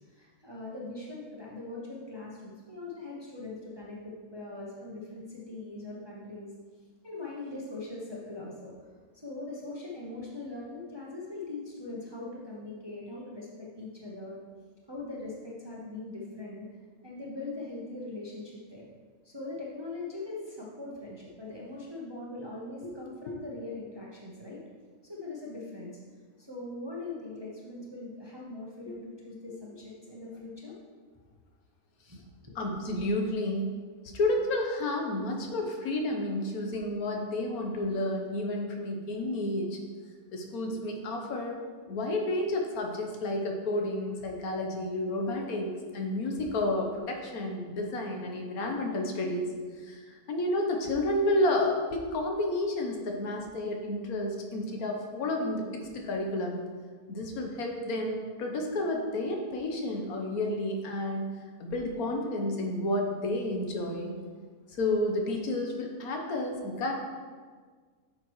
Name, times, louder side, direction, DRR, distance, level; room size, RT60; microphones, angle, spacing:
voice 1, 0.1-6.5 7.0-8.7 9.1-14.4 14.9-16.7 17.0-18.8 19.2-24.6 25.0-25.9 26.4-30.8 32.1-32.5, left 2 dB, 20° right, -5 dB, 1.0 m, -41 dB
voice 2, 32.5-33.7 34.1-39.8 40.3-41.6 41.9-49.5 49.8-56.6 57.1-61.3 61.6-64.1 64.7-66.9, left 1 dB, 80° left, 2 dB, 1.5 m, -31 dB
8.7 x 6.4 x 3.1 m, 1.6 s
omnidirectional pair, 1.5 m